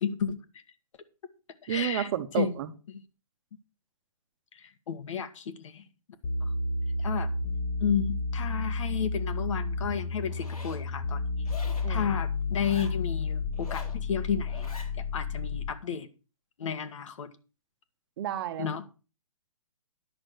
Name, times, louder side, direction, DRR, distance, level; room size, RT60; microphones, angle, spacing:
voice 1, 0.0-0.4 1.6-2.1 2.3-2.5 4.6-5.8 6.4-6.5 7.0-7.3 7.8-11.4 11.9-16.1 16.6-17.3 18.6-18.8, left 7 dB, 60° left, 1.7 m, -32 dB
voice 2, 1.7-2.7 11.8-12.1 18.2-18.7, right 11 dB, 40° right, 1.3 m, -31 dB
sound 1, 6.2-15.8, left 3 dB, 40° left, 2.0 m, -31 dB
Zipper (clothing), 10.3-10.8 11.4-11.9 12.5-13.0 13.5-14.0 14.5-14.9, left 3 dB, 90° left, 3.7 m, -46 dB
11.0 x 6.4 x 6.3 m
hypercardioid pair, 135°, 18 cm